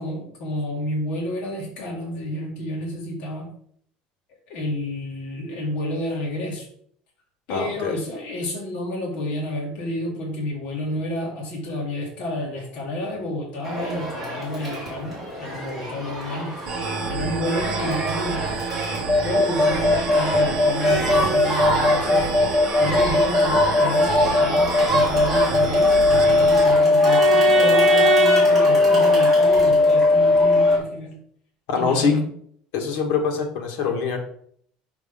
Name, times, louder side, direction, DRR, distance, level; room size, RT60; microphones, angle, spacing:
voice 1, 0.0-3.5 4.5-6.7 7.5-16.6 17.1-18.5 19.2-22.2 22.8-31.2 31.7-32.2, left 1 dB, 50° left, -2 dB, 1.9 m, -30 dB
voice 2, 7.5-8.0 31.7-32.2 32.7-34.2, left 5 dB, 70° left, 3 dB, 1.5 m, -23 dB
Crowd, 13.6-30.8, right 2 dB, 5° right, 2.9 m, -27 dB
sound 1, 16.6-26.6, right 5 dB, 45° right, 1.1 m, -30 dB
sound 2, 19.1-30.8, left 2 dB, 15° left, 0.9 m, -17 dB
6.0 x 5.6 x 3.6 m, 0.63 s
cardioid pair, 175°, 3 cm